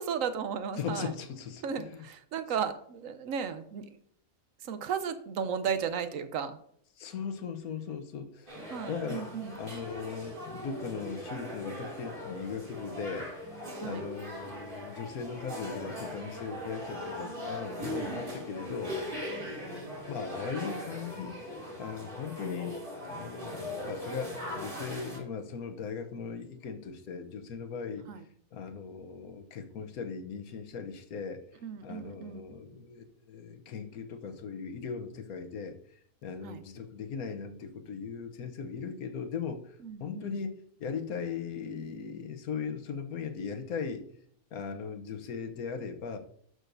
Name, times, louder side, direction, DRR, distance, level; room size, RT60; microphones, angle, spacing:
voice 1, 0.0-1.1 1.6-4.0 4.6-6.6 8.7-9.6 13.8-14.0 19.4-20.1 28.1-28.2 31.6-32.8 36.4-36.6 39.8-40.4, right 7 dB, 70° right, 10 dB, 1.0 m, -35 dB
voice 2, 0.8-2.0 7.0-8.6 8.9-13.3 13.8-19.0 19.3-22.8 23.1-28.1 28.5-31.4 31.8-44.1 44.5-46.2, left 6 dB, 80° left, 7 dB, 1.3 m, -39 dB
sound 1, 8.5-25.2, left 1 dB, 35° right, 2.8 m, -40 dB
11.5 x 6.3 x 2.6 m, 0.64 s
omnidirectional pair, 1.5 m